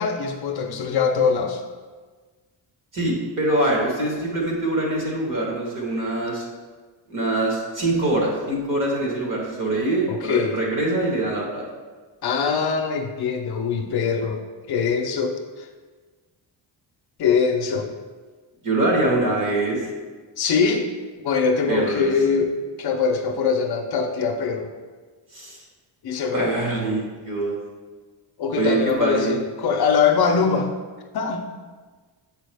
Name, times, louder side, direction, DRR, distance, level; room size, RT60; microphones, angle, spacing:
voice 1, 0.0-1.6 10.1-10.6 12.2-14.4 14.7-15.7 17.2-17.9 20.4-20.8 21.2-22.5 22.8-24.7 26.0-26.5 28.4-30.7 31.1-31.5, left 5 dB, 55° left, 4 dB, 0.6 m, -22 dB
voice 2, 2.9-6.5 7.1-11.6 18.6-19.8 21.7-22.1 25.3-25.6 26.3-27.5 28.6-29.3, right 2 dB, 40° right, -2 dB, 1.5 m, -24 dB
7.4 x 4.6 x 3.4 m, 1.4 s
wide cardioid pair, 180°, 46 cm